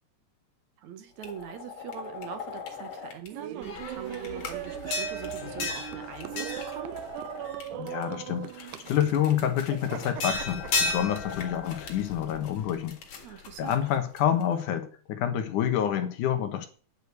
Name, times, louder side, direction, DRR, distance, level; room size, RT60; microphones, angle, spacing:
voice 1, 0.8-7.0 13.2-13.8, right 8 dB, 70° right, 9 dB, 2.4 m, -42 dB
sound 1, 1.2-3.3 3.6-8.0 8.5-14.4, left 4 dB, 65° left, 3.1 m, -36 dB
Laughter, 3.3-11.4, right 14 dB, 90° right, 2.3 m, -39 dB
voice 2, 7.7-13.0 13.3-16.7, left 10 dB, 80° left, 8 dB, 2.8 m, -28 dB
10.5 x 5.0 x 8.1 m, 0.40 s
omnidirectional pair, 3.6 m